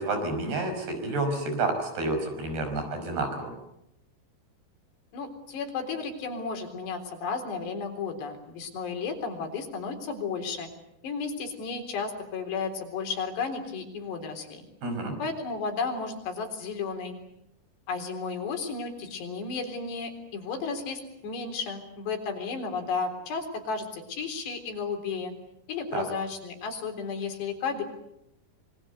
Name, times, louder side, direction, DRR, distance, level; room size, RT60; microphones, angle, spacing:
voice 1, 0.0-3.6 14.8-15.2 25.9-26.0, right 2 dB, 70° right, 6 dB, 7.2 m, -29 dB
voice 2, 5.1-10.7 11.0-14.7 15.2-17.2 17.9-25.3 25.7-27.8, left 5 dB, 85° left, 6 dB, 5.9 m, -33 dB
26.0 x 23.5 x 8.0 m, 0.84 s
omnidirectional pair, 4.8 m